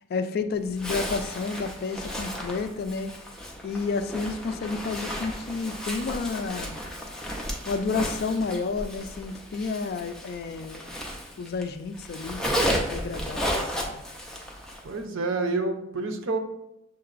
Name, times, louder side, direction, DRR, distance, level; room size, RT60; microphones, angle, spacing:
voice 1, 0.1-3.1 3.6-6.8 7.7-10.9 11.4-14.0, left 4 dB, 50° left, 10 dB, 0.3 m, -31 dB
Zipper (clothing), 0.7-11.6 11.9-14.9, equal, 5° left, 0.6 m, -33 dB
voice 2, 14.8-16.4, right 3 dB, 80° right, 5 dB, 0.6 m, -28 dB
6.5 x 2.9 x 2.5 m, 0.87 s
head